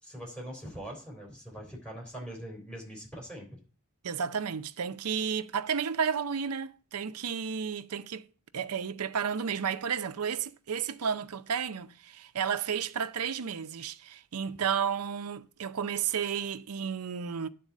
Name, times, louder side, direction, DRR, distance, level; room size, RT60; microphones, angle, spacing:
voice 1, 0.0-3.6, equal, 5° left, 3.7 m, -42 dB
voice 2, 4.0-8.3 8.5-17.5, right 7 dB, 85° right, 0.6 m, -32 dB
10.5 x 4.2 x 7.3 m
head